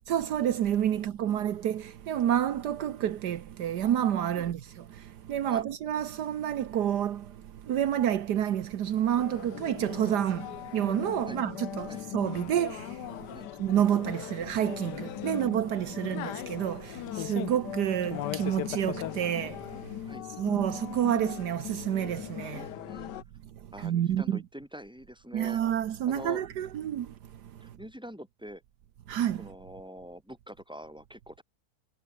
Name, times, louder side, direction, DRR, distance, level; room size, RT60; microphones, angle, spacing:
voice 1, 0.1-20.1 20.4-22.7 23.5-24.4 25.3-27.8 29.1-29.5, right 10 dB, 75° right, 1.6 m, -29 dB
voice 2, 0.9-1.4 5.5-5.6 11.3-11.4 11.9-12.0 13.3-13.5 20.1-20.3 22.5-23.1 23.7-25.6 26.0-26.4 27.6-28.6 29.4-31.4, equal, 5° right, 7.4 m, -45 dB
sound 1, 9.2-23.2, left 12 dB, 85° left, 1.4 m, -39 dB
omnidirectional pair, 1.8 m